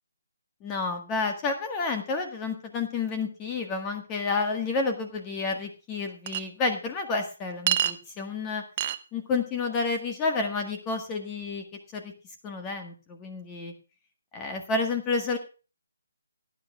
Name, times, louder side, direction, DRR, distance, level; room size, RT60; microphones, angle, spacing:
voice 1, 0.6-8.6 9.1-11.6 11.9-12.1 12.4-13.7 14.3-15.4, left 4 dB, 20° left, 4 dB, 1.6 m, -30 dB
Chink clink, 6.3-6.4 7.7-8.0 8.8-9.0, right 10 dB, 35° right, 0.7 m, -25 dB
18.0 x 10.5 x 2.4 m, 0.32 s
figure-of-eight pair, 145°, 0 cm